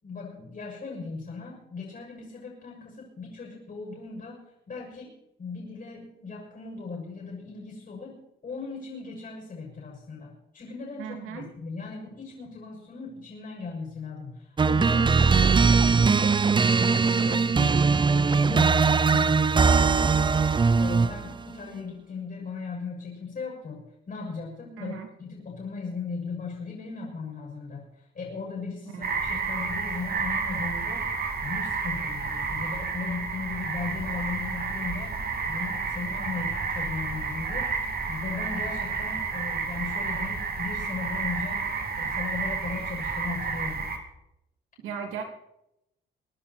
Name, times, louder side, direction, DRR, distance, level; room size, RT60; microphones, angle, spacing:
voice 1, 0.0-4.4 4.7-5.1 5.4-8.1 8.4-16.4 16.8-20.4 20.8-27.9 28.1-31.1 31.4-35.1 35.5-41.6 42.0-43.8, left 4 dB, 45° left, -2 dB, 6.5 m, -37 dB
voice 2, 11.0-11.5 24.8-25.1 28.9-29.1 44.8-45.2, right 7 dB, 90° right, 4 dB, 3.0 m, -36 dB
sound 1, 14.6-21.3, right 5 dB, 25° right, 0.6 m, -21 dB
sound 2, 29.0-44.0, right 5 dB, 50° right, 2.7 m, -31 dB
23.5 x 10.5 x 4.4 m, 0.84 s
cardioid pair, 90°, 20 cm